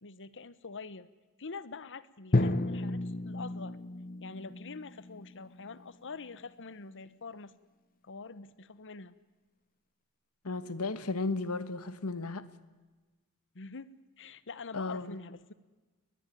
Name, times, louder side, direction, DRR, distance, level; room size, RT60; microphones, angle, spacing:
voice 1, 0.0-1.1 1.4-3.8 4.2-7.5 8.0-9.1 13.5-13.9 14.2-15.5, left 4 dB, 60° left, 1.2 m, -45 dB
Drum, 2.3-6.3, left 2 dB, 40° left, 0.9 m, -33 dB
voice 2, 10.4-12.4 14.7-15.1, left 3 dB, 75° left, 1.4 m, -34 dB
22.5 x 20.0 x 9.3 m
head